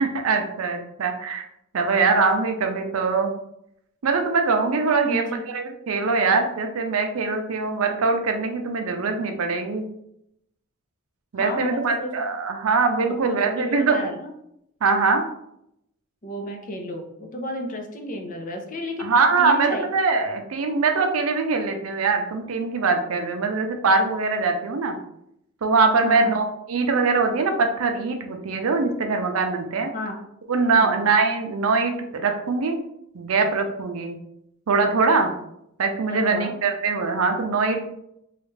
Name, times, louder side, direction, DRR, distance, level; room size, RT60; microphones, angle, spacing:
voice 1, 0.0-1.5 1.7-3.3 4.0-9.8 11.3-14.0 14.8-15.2 19.0-25.0 25.6-29.9 30.5-32.8 33.1-34.2 34.7-35.3 35.8-37.8, right 4 dB, 75° right, 5 dB, 0.5 m, -22 dB
voice 2, 5.0-5.5 11.4-12.1 13.0-14.3 16.2-19.1 19.4-19.8 26.0-26.4 29.9-30.2 30.8-31.1 36.1-36.5, left 1 dB, 40° left, 2 dB, 0.6 m, -32 dB
3.2 x 2.4 x 3.2 m, 0.78 s
head